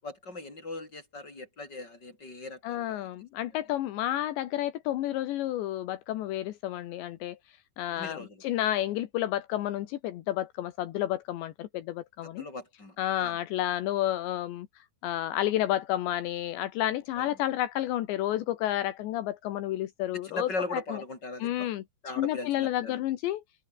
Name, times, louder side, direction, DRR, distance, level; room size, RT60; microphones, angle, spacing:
voice 1, 0.0-3.1 7.9-8.4 12.2-13.4 17.2-17.3 20.2-21.7 22.0-23.0, left 2 dB, 20° left, 8.4 m, -39 dB
voice 2, 2.6-7.4 7.8-12.5 13.0-21.0 21.4-21.8 22.2-23.4, left 13 dB, 80° left, 3.6 m, -31 dB
omnidirectional pair, 5.2 m